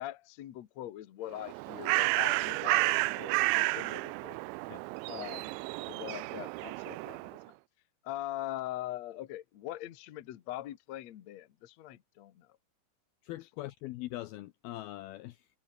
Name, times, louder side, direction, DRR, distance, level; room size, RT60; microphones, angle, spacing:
voice 1, 0.0-4.4 5.1-5.6 5.9-7.4 8.0-12.5, left 14 dB, 70° left, 1.6 m, -42 dB
Bird, 1.3-7.4, right 23 dB, 85° right, 2.9 m, -31 dB
voice 2, 13.2-15.5, left 16 dB, 90° left, 2.1 m, -42 dB
omnidirectional pair, 5.3 m